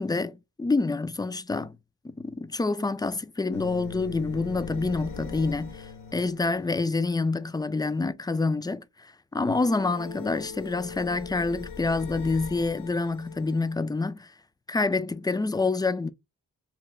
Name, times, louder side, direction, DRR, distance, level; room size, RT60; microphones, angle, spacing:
voice 1, 0.0-1.8 2.0-14.3 14.7-16.1, left 3 dB, 15° left, 0.3 m, -27 dB
sound 1, 3.5-7.0 9.3-13.7, left 6 dB, 70° left, 0.9 m, -41 dB
3.1 x 2.1 x 3.6 m
cardioid pair, 65°, 34 cm